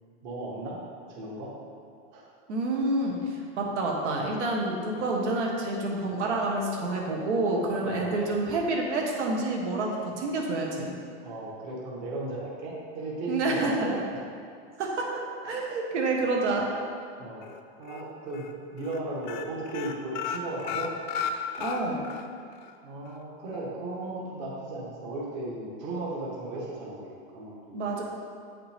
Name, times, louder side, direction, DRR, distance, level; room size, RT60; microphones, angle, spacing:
voice 1, 0.2-0.8 1.1-1.5 2.1-2.3 7.8-8.2 11.2-14.0 17.2-17.4 17.8-20.9 22.8-27.9, right 2 dB, 40° right, -3 dB, 1.2 m, -36 dB
voice 2, 2.5-10.9 13.3-13.9 14.8-16.7 21.6-22.0 27.7-28.0, right 2 dB, 80° right, -1 dB, 1.4 m, -28 dB
sound 1, 17.4-18.0 18.3-18.5 18.8-19.0 19.2-22.3 22.6-22.7 23.1-23.2, left 7 dB, 45° left, 0.5 m, -34 dB
8.0 x 5.7 x 3.4 m, 2.3 s
supercardioid pair, 170°, 34 cm